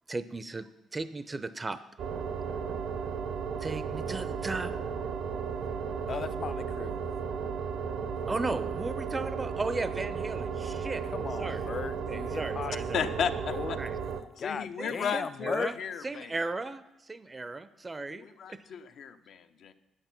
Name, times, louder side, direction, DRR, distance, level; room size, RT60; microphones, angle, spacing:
voice 1, 0.1-1.8 3.6-4.7 7.9-11.0 11.4-11.6 12.1-13.1 13.8-14.0 14.8-15.7 16.0-18.6, right 3 dB, 25° right, 0.5 m, -36 dB
sound 1, 2.0-14.2, right 6 dB, 75° right, 0.9 m, -34 dB
voice 2, 6.1-6.9 11.1-12.7 13.5-13.8 14.4-15.8, left 6 dB, 45° left, 0.4 m, -36 dB
voice 3, 12.9-13.8 14.4-16.3 18.1-19.7, left 7 dB, 70° left, 0.8 m, -34 dB
10.0 x 9.1 x 5.9 m
cardioid pair, 90°, 0 cm